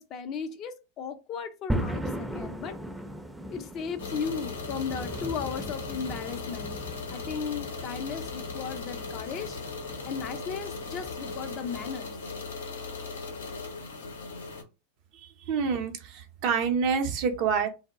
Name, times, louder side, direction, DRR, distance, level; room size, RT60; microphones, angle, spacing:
voice 1, 0.0-2.8 3.5-6.8 7.1-9.6 10.0-12.2, left 6 dB, 40° left, 0.5 m, -36 dB
sound 1, 1.7-11.9, right 1 dB, 5° right, 0.5 m, -38 dB
sound 2, 4.0-14.6, left 4 dB, 80° left, 0.6 m, -38 dB
voice 2, 15.1-17.7, right 6 dB, 50° right, 0.6 m, -27 dB
2.2 x 2.0 x 3.6 m
hypercardioid pair, 95°, 0 cm